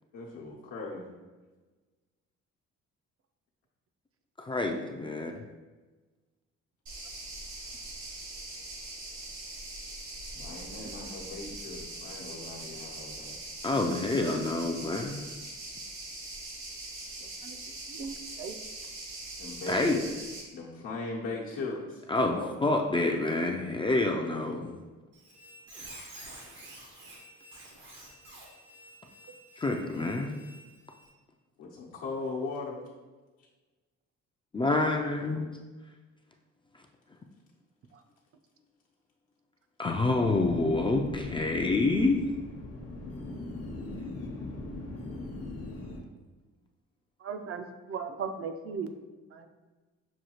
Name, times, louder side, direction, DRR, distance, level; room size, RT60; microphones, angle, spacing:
voice 1, 0.1-1.1 10.3-13.4 19.4-20.2 20.5-22.0 22.3-22.8 31.6-32.8, left 3 dB, 75° left, -5 dB, 0.9 m, -39 dB
voice 2, 4.4-5.4 13.6-15.2 19.7-20.0 22.1-24.8 29.6-30.4 34.5-35.5 39.8-42.2, left 2 dB, 15° left, 2 dB, 0.3 m, -27 dB
sound 1, 6.9-20.4, right 2 dB, 70° right, 1.2 m, -42 dB
voice 3, 17.9-18.6 47.2-48.9 49.3-49.5, right 6 dB, 50° right, 7 dB, 0.5 m, -37 dB
Squeak, 25.1-31.1, right 1 dB, 90° right, 1.3 m, -50 dB
sound 2, 40.2-46.0, left 2 dB, 55° left, 0.8 m, -40 dB
6.3 x 2.3 x 2.9 m, 1.3 s
cardioid pair, 90°, 30 cm